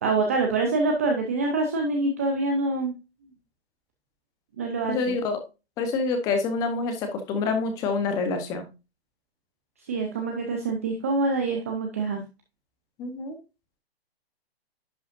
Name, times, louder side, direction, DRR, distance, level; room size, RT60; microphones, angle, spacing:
voice 1, 0.0-2.9 4.6-5.2 9.8-12.2, right 3 dB, 15° right, 3 dB, 0.5 m, -25 dB
voice 2, 4.9-5.4 5.8-8.7 13.0-13.4, left 4 dB, 10° left, 7 dB, 0.8 m, -27 dB
11.0 x 5.4 x 2.5 m, 0.28 s
hypercardioid pair, 160°, 32 cm